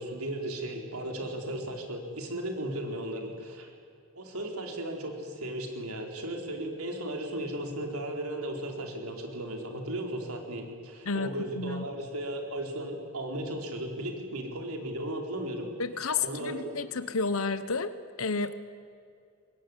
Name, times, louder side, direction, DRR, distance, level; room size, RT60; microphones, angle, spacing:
voice 1, 0.0-3.7 4.1-15.7 16.2-16.6, right 1 dB, 80° right, 3 dB, 4.6 m, -36 dB
voice 2, 11.1-11.9 15.8-17.9 18.2-18.5, left 4 dB, 70° left, 12 dB, 1.1 m, -31 dB
24.0 x 20.0 x 9.9 m, 2.4 s
head